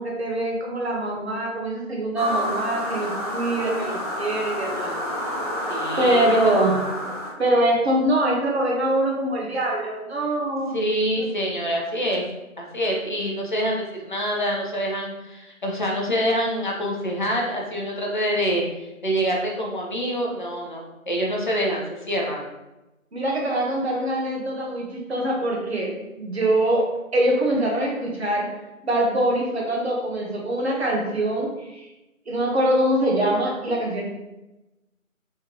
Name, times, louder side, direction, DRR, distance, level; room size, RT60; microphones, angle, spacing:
voice 1, 0.0-5.0 6.0-6.8 7.4-10.8 11.2-11.3 23.1-25.9 26.2-28.5 28.8-31.9 32.3-34.0, right 1 dB, 50° right, -1 dB, 1.1 m, -23 dB
sound 1, 2.1-7.3, equal, 30° right, 0.6 m, -28 dB
voice 2, 5.7-6.5 10.7-12.2 12.6-18.6 19.0-22.4, equal, 35° left, -2 dB, 0.8 m, -26 dB
3.6 x 3.6 x 2.8 m, 1.0 s
figure-of-eight pair, 160°, 41 cm